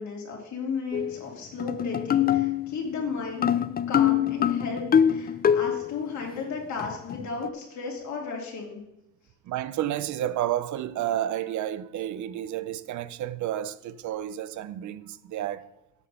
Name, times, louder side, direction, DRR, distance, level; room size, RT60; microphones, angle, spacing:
voice 1, 0.0-3.5 3.9-8.8, left 5 dB, 70° left, 2.7 m, -34 dB
sound 1, 0.9-1.2 1.6-2.8 3.4-6.0 6.8-7.5, left 9 dB, 30° left, 0.4 m, -24 dB
voice 2, 9.4-15.6, right 12 dB, 75° right, 0.6 m, -31 dB
8.2 x 5.8 x 5.6 m
cardioid pair, 90°, 30 cm